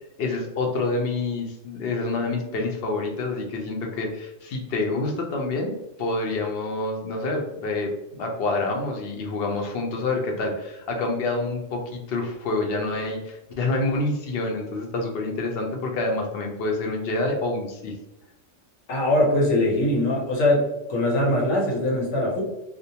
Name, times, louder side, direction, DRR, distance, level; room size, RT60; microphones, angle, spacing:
voice 1, 0.2-18.0, left 2 dB, 60° left, 2 dB, 0.7 m, -27 dB
voice 2, 18.9-22.4, left 1 dB, 90° left, -1 dB, 1.2 m, -22 dB
2.5 x 2.1 x 2.7 m, 0.91 s
omnidirectional pair, 1.3 m